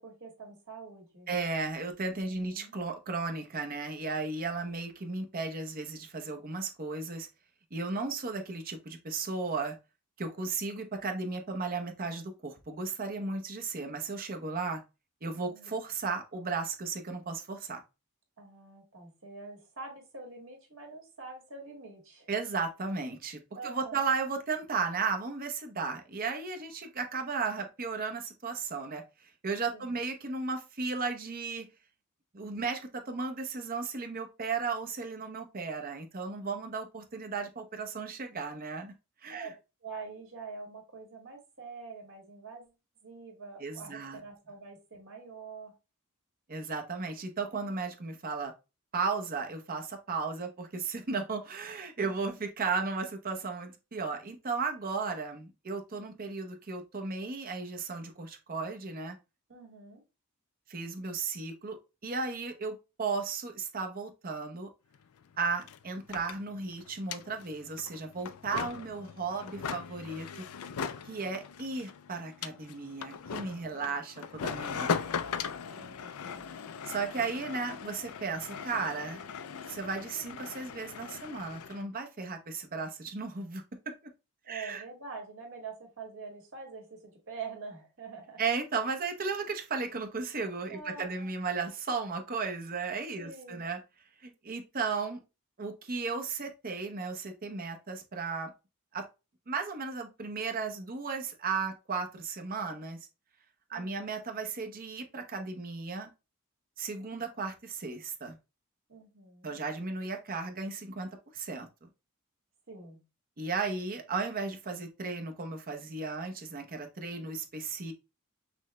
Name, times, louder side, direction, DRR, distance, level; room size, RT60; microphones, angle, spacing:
voice 1, 0.0-1.3 2.3-2.7 15.4-15.7 18.4-22.3 23.5-24.0 29.7-30.0 39.3-39.5 39.8-42.7 43.0-45.7 52.0-52.2 59.5-60.0 73.6-73.9 75.6-76.6 84.4-88.4 90.7-91.3 93.2-93.6 103.7-104.0 108.9-109.6 112.7-113.0, right 4 dB, 65° right, 1.9 m, -45 dB
voice 2, 1.3-7.3 7.7-9.8 10.2-14.8 15.2-17.8 22.3-31.7 32.3-38.9 39.2-39.5 43.6-44.2 46.5-48.5 48.9-59.2 60.7-61.8 62.0-64.7 65.4-70.4 71.0-75.0 76.8-79.2 79.7-83.6 84.5-84.8 88.4-93.8 94.2-95.2 95.6-98.5 98.9-99.0 99.5-103.0 103.7-106.1 106.8-108.4 109.4-111.7 113.4-117.9, right 4 dB, 40° right, 0.8 m, -35 dB
sound 1, 64.9-65.0 65.2-81.8, left 6 dB, 80° left, 0.4 m, -39 dB
6.0 x 2.2 x 3.1 m
head